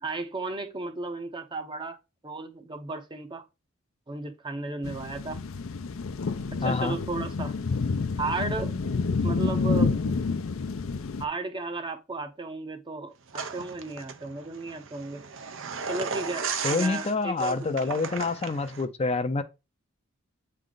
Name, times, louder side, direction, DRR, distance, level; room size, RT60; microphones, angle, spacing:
voice 1, 0.0-2.0 2.2-3.4 4.1-5.4 6.5-7.5 8.2-8.7 9.2-10.1 11.2-15.2 15.9-18.0, right 3 dB, 25° right, 0.7 m, -34 dB
sound 1, 4.8-11.2, left 4 dB, 80° left, 0.6 m, -29 dB
voice 2, 6.6-7.0 16.6-19.4, left 3 dB, 30° left, 0.5 m, -27 dB
sound 2, 13.3-18.8, right 5 dB, 65° right, 0.7 m, -35 dB
8.4 x 3.3 x 3.9 m
head